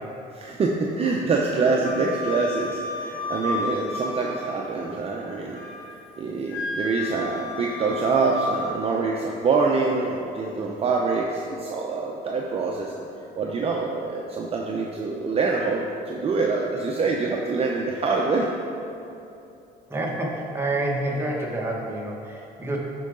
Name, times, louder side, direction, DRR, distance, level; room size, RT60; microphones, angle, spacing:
voice 1, 0.3-5.6 6.2-13.1 13.4-18.5, right 4 dB, 35° right, -1 dB, 0.7 m, -25 dB
Wind instrument woodwind instrument, 1.8-4.8 5.2-6.0 6.5-8.7, left 2 dB, 60° left, 1.8 m, -32 dB
voice 2, 19.9-22.8, right 1 dB, 15° right, -2 dB, 1.4 m, -28 dB
11.0 x 4.7 x 3.8 m, 2.8 s
cardioid pair, 110°, 17 cm